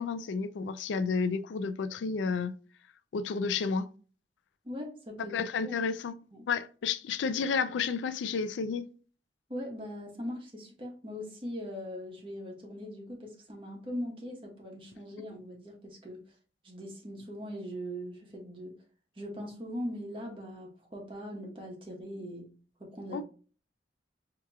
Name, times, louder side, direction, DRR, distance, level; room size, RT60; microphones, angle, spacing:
voice 1, 0.0-2.5 3.1-3.9 5.3-6.1 6.5-8.8 23.1-23.2, left 5 dB, 90° left, 0.3 m, -31 dB
voice 2, 4.6-5.3 5.6-5.8 6.3-6.4 9.5-16.2 16.6-18.8 19.2-22.5 22.8-23.2, equal, 30° right, 1.1 m, -40 dB
4.7 x 2.8 x 2.3 m
head